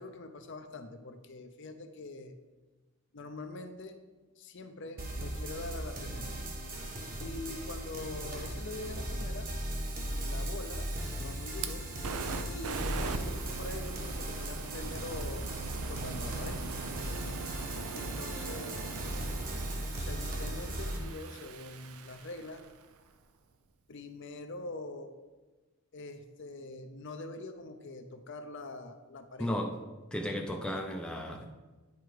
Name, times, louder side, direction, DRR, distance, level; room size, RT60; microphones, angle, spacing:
voice 1, 0.0-2.3 3.1-4.0 4.4-6.4 7.2-9.5 10.0-11.9 12.5-15.5 15.9-16.6 17.9-18.9 20.0-22.6 23.9-25.1 25.9-29.5, left 2 dB, 55° left, 7 dB, 0.6 m, -44 dB
sound 1, 5.0-21.0, right 1 dB, 40° right, 1.3 m, -37 dB
Fire, 9.7-22.9, right 5 dB, 80° right, 0.6 m, -42 dB
voice 2, 29.4-29.7 30.1-31.4, left 1 dB, 5° left, 1 dB, 0.5 m, -34 dB
9.4 x 4.6 x 4.9 m, 1.2 s
head